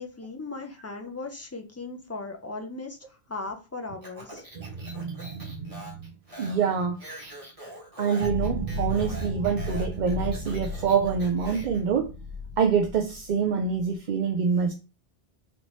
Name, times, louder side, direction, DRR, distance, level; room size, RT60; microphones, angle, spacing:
voice 1, 0.0-3.0 3.3-4.4, left 3 dB, 20° left, 0.4 m, -37 dB
Speech, 4.0-11.8, equal, 35° right, 1.5 m, -44 dB
voice 2, 4.6-5.8 6.4-7.0 8.0-12.1 12.6-14.7, right 6 dB, 55° right, 0.6 m, -26 dB
sound 1, 8.2-13.9, equal, 90° right, 1.4 m, -34 dB
4.0 x 3.3 x 3.0 m
omnidirectional pair, 1.1 m